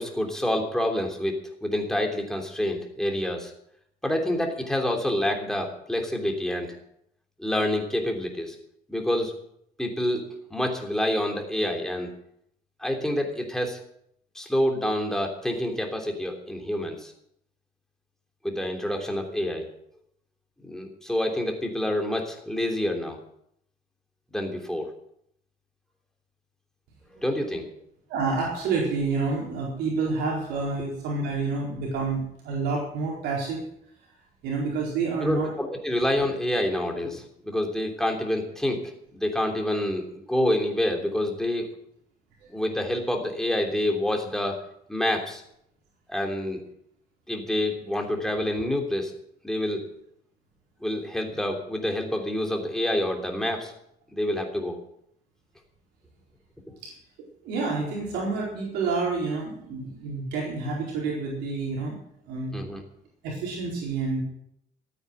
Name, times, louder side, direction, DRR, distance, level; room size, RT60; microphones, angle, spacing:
voice 1, 0.0-3.5 4.0-6.7 7.4-8.5 8.9-9.3 9.8-10.2 10.5-12.1 12.8-13.8 14.3-17.1 18.4-19.7 20.6-23.2 24.3-24.9 27.2-27.7 35.2-38.8 39.1-41.7 42.5-44.6 44.9-45.4 46.1-46.6 47.3-49.1 49.4-49.8 50.8-53.7 54.1-54.8 62.5-62.8, left 1 dB, 5° left, 2 dB, 3.1 m, -27 dB
voice 2, 28.1-33.6 34.4-35.5 42.4-42.7 56.8-56.9 57.4-62.0 62.3-62.6 63.2-64.2, right 4 dB, 85° right, -3 dB, 4.4 m, -29 dB
13.0 x 9.4 x 7.8 m, 0.72 s
cardioid pair, 110°, 17 cm